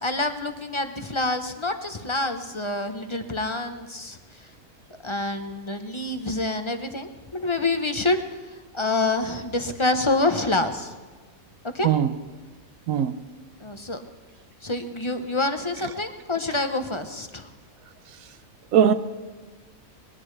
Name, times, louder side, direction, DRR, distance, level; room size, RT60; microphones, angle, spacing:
voice 1, 0.0-4.2 5.0-8.2 8.7-11.0 11.7-11.9 13.6-14.0 14.6-17.5, left 2 dB, 25° left, 0.7 m, -27 dB
voice 2, 11.8-12.1 12.9-13.2 18.7-18.9, right 9 dB, 75° right, 1.1 m, -19 dB
21.0 x 18.0 x 3.3 m
omnidirectional pair, 1.5 m